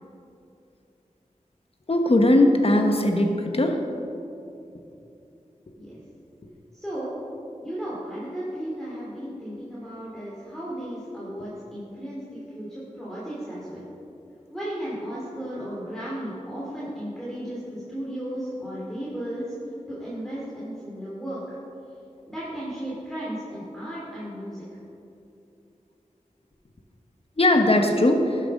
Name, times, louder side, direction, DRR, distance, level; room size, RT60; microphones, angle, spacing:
voice 1, 1.9-3.8 27.4-28.4, left 1 dB, 45° left, 4 dB, 1.2 m, -19 dB
voice 2, 6.7-7.2 7.6-13.8 14.5-19.5 19.9-21.6 22.3-24.6, equal, 5° left, -8 dB, 2.7 m, -35 dB
12.5 x 7.6 x 5.4 m, 2.7 s
wide cardioid pair, 55°, 13 cm